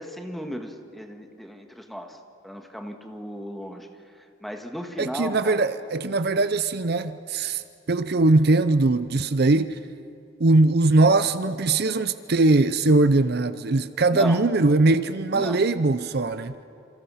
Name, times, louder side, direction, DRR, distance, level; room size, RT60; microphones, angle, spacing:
voice 1, 0.0-2.2 2.4-3.9 4.4-5.6 14.1-14.4 15.3-15.6, equal, ahead, 1.8 m, -35 dB
voice 2, 5.0-7.6 7.9-9.8 10.4-16.6, right 2 dB, 55° right, 0.6 m, -21 dB
28.5 x 28.0 x 5.8 m
head